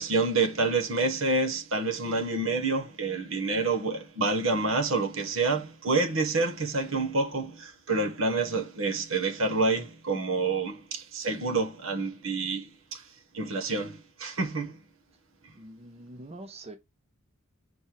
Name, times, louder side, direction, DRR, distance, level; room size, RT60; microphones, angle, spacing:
voice 1, 0.0-13.0 13.3-14.8, right 3 dB, 70° right, 1.2 m, -28 dB
voice 2, 15.5-16.8, right 2 dB, 30° right, 0.7 m, -44 dB
5.3 x 4.3 x 4.6 m
head